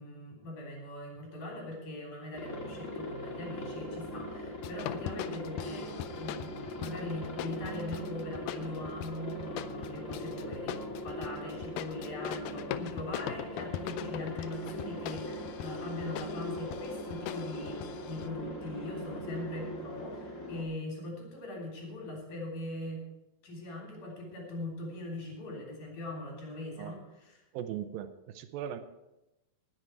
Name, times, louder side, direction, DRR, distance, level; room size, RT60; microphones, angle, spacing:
voice 1, 0.0-5.9 6.2-23.0 23.4-27.4, left 1 dB, 60° left, -2 dB, 4.9 m, -41 dB
Aircraft, 2.3-20.6, left 1 dB, 40° left, 1.2 m, -40 dB
sound 1, 4.6-18.3, left 12 dB, 85° left, 1.8 m, -41 dB
voice 2, 27.5-28.8, right 10 dB, 80° right, 9 dB, 2.5 m, -38 dB
19.5 x 7.7 x 4.6 m, 0.97 s
omnidirectional pair, 4.2 m